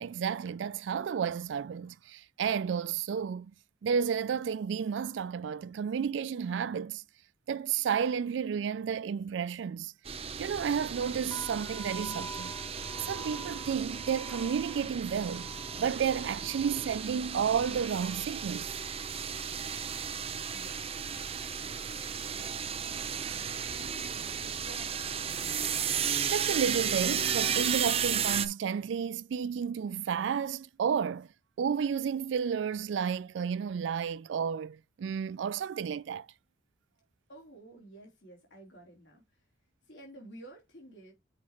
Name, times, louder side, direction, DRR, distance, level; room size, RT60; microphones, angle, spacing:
voice 1, 0.0-3.5 3.8-7.0 7.5-9.9 10.4-12.5 13.0-15.5 15.8-18.8 20.4-20.5 26.3-31.3 31.6-36.3, right 7 dB, 75° right, 0.3 m, -32 dB
sound 1, 10.1-28.5, right 7 dB, 30° right, 0.7 m, -34 dB
sound 2, 11.3-19.2 19.4-20.1 20.7-21.0 21.3-22.7, right 2 dB, 15° left, 0.7 m, -49 dB
voice 2, 20.5-20.9 22.2-22.6 23.7-25.2 37.3-39.4 39.8-41.1, right 1 dB, 75° left, 3.4 m, -51 dB
7.6 x 5.2 x 3.0 m
head